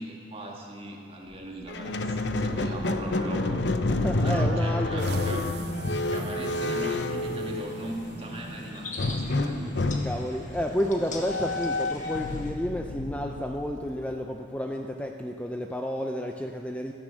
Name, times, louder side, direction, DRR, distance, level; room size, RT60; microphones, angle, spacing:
voice 1, 0.0-3.6 4.2-5.4 6.1-9.8, right 1 dB, 30° right, -1 dB, 2.0 m, -39 dB
Squeak, 1.7-8.0 9.0-14.1, left 2 dB, 70° left, 0.8 m, -29 dB
voice 2, 3.9-5.1 10.0-16.9, equal, 10° left, 3 dB, 0.6 m, -31 dB
sound 1, 5.0-9.3, right 3 dB, 65° right, 0.6 m, -40 dB
sound 2, 5.6-12.5, left 1 dB, 45° left, 1.6 m, -40 dB
15.5 x 13.0 x 6.5 m, 2.7 s
head